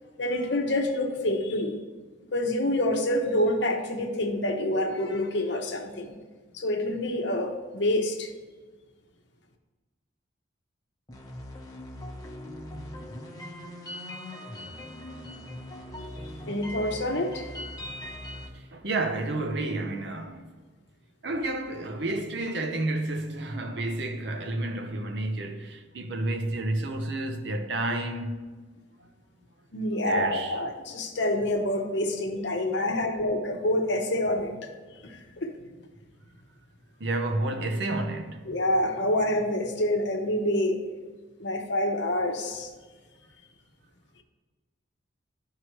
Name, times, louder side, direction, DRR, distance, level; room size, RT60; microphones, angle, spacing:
voice 1, 0.2-1.8 2.3-6.2 6.5-8.3 16.5-17.4 29.7-34.7 35.0-35.5 38.5-40.8 41.4-42.7, left 1 dB, 60° left, 0.9 m, -27 dB
sound 1, 11.1-18.5, left 1 dB, 20° left, 1.0 m, -40 dB
voice 2, 18.5-20.5 21.2-28.4 29.0-29.1 30.0-30.6 33.0-33.2 37.0-38.5, right 2 dB, 60° right, 0.7 m, -30 dB
12.0 x 4.7 x 3.1 m
head